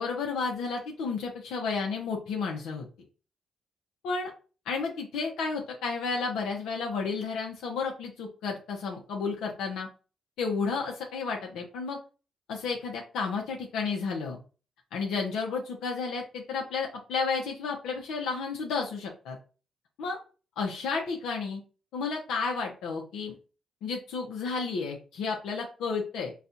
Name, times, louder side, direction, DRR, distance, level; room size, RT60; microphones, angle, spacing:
voice 1, 0.0-2.8 4.0-4.3 4.7-9.9 10.4-12.0 12.5-14.4 14.9-19.4 20.0-20.2 20.6-21.6 21.9-23.3 23.8-26.3, left 4 dB, 90° left, 0 dB, 0.7 m, -32 dB
4.1 x 2.4 x 2.6 m, 0.34 s
cardioid pair, 90°, 0 cm